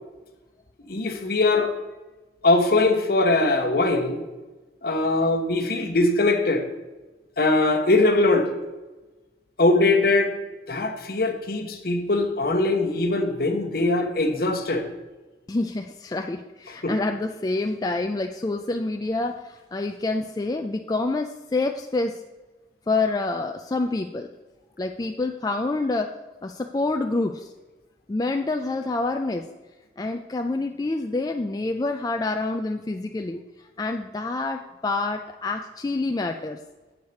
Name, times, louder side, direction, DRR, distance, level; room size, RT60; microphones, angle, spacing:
voice 1, 0.9-1.7 2.4-4.2 4.8-6.6 7.4-8.5 9.6-10.3 10.7-14.9 16.8-16.9, left 2 dB, 55° left, 5 dB, 1.0 m, -21 dB
voice 2, 15.5-22.2 22.9-24.3 24.8-26.1 26.4-27.5 28.1-29.4 30.0-36.6, left 2 dB, 20° left, 5 dB, 0.3 m, -27 dB
8.0 x 4.9 x 6.9 m, 1.2 s
head